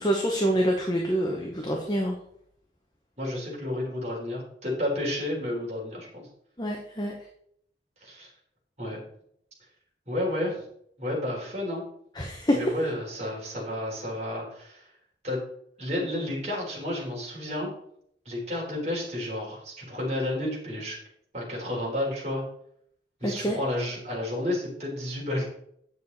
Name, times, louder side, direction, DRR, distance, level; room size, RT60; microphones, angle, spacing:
voice 1, 0.0-2.2 6.6-7.1 12.2-12.6 23.2-23.6, equal, 25° left, 1 dB, 1.0 m, -26 dB
voice 2, 3.2-6.3 8.0-8.3 8.8-9.0 10.1-10.6 11.0-11.8 12.5-14.9 15.2-15.4 15.8-17.7 18.3-21.0 21.3-22.4 23.2-25.5, left 1 dB, 40° right, -3 dB, 4.0 m, -31 dB
9.3 x 6.7 x 4.1 m, 0.69 s
head